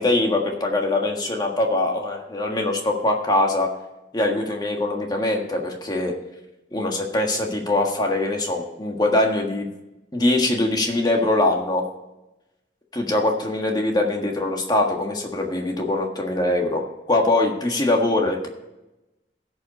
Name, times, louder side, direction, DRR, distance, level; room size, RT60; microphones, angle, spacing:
voice 1, 0.0-3.7 4.1-6.1 6.7-9.7 10.1-11.8 12.9-18.5, left 2 dB, 25° left, 2 dB, 1.6 m, -22 dB
16.0 x 5.5 x 4.2 m, 0.99 s
head